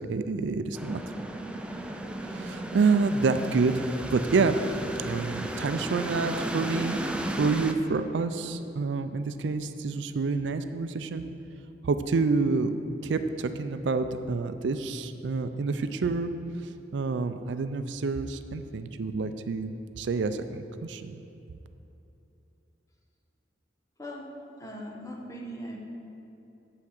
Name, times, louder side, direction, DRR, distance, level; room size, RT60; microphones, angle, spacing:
voice 1, 0.1-1.0 2.2-4.6 5.0-7.0 7.4-11.3 11.8-12.8 13.0-16.3 16.9-21.2, right 4 dB, 75° right, 10 dB, 0.4 m, -28 dB
sound 1, 0.7-7.7, right 1 dB, 5° right, 0.4 m, -35 dB
voice 2, 24.6-25.8, equal, 20° left, -1 dB, 1.0 m, -39 dB
7.8 x 5.9 x 6.5 m, 2.8 s
head